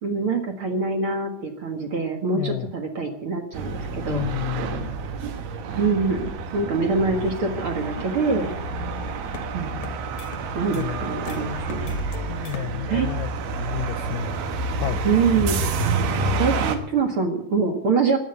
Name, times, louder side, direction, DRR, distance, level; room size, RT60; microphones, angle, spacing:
voice 1, 0.0-4.3 5.7-8.5 9.5-9.8 10.5-12.0 12.9-13.1 15.0-15.6 16.4-18.2, right 4 dB, 50° right, 5 dB, 1.8 m, -24 dB
voice 2, 2.3-2.7 4.1-5.0 10.7-11.1 12.3-13.3 13.6-14.4 14.8-15.0, left 10 dB, 75° left, 13 dB, 2.1 m, -31 dB
sound 1, 3.5-16.8, right 3 dB, 75° right, 3.4 m, -28 dB
sound 2, 7.1-12.7, left 6 dB, 50° left, 1.6 m, -42 dB
15.0 x 11.0 x 8.2 m, 0.73 s
omnidirectional pair, 4.5 m